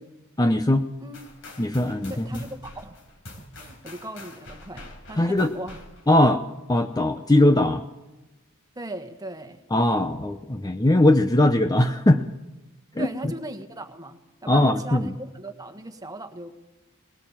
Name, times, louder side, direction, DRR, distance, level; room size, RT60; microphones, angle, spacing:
voice 1, 0.4-0.9 1.6-2.4 5.2-5.5 6.1-6.4 6.7-7.8 9.7-12.2 12.9-13.1 14.5-15.1, left 1 dB, 15° left, 7 dB, 0.7 m, -20 dB
sound 1, 1.1-6.3, left 1 dB, 65° left, 4.5 m, -45 dB
voice 2, 2.0-3.0 3.4-5.9 8.7-9.6 13.0-16.6, right 1 dB, 15° right, 7 dB, 1.6 m, -38 dB
20.5 x 18.5 x 7.4 m, 1.0 s
head